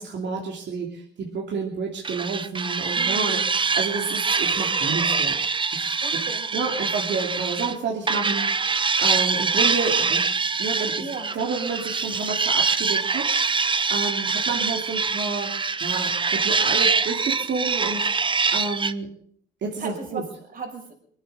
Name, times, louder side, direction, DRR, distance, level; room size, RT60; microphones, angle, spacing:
voice 1, 0.0-5.4 5.7-6.2 6.5-8.6 9.0-10.3 10.6-11.0 11.3-13.3 13.9-18.1 18.5-19.1 19.6-20.2, right 4 dB, 65° right, -1 dB, 2.9 m, -30 dB
sound 1, 2.0-7.7 8.1-18.9, right 4 dB, 25° right, 0.7 m, -24 dB
voice 2, 2.9-3.4 6.0-7.3 10.9-11.4 19.8-20.9, right 4 dB, 45° right, 0 dB, 5.6 m, -37 dB
23.5 x 8.7 x 6.6 m, 0.63 s
cardioid pair, 90°, 20 cm